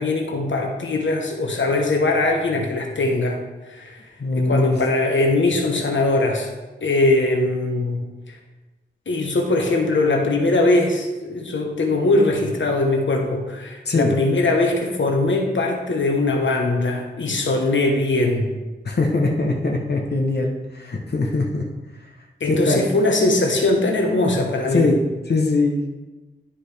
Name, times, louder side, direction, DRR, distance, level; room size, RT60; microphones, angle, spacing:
voice 1, 0.0-3.4 3.7-4.0 4.4-6.5 6.8-8.4 9.1-18.6 22.4-24.9, left 2 dB, 80° left, 2 dB, 1.1 m, -21 dB
voice 2, 4.2-4.8 13.9-14.1 18.8-21.6 22.4-22.8 24.7-25.9, left 2 dB, 60° left, 1 dB, 1.0 m, -21 dB
11.5 x 5.0 x 3.4 m, 1.2 s
wide cardioid pair, 70°, 19 cm